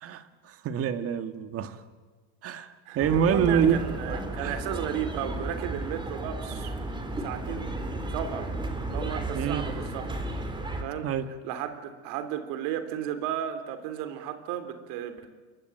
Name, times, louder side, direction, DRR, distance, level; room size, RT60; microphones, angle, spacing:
voice 1, 0.0-1.8 2.4-3.8 4.4-4.6 9.3-9.6 11.0-11.3, right 8 dB, 45° right, 10 dB, 1.9 m, -26 dB
voice 2, 2.8-6.8 7.2-7.7 8.1-8.5 8.9-10.2 10.7-11.1 11.4-15.3, right 10 dB, 70° right, 9 dB, 3.3 m, -34 dB
sound 1, 3.0-10.8, right 2 dB, 15° right, 3.3 m, -34 dB
27.5 x 23.0 x 9.1 m, 1.4 s
cardioid pair, 140°, 34 cm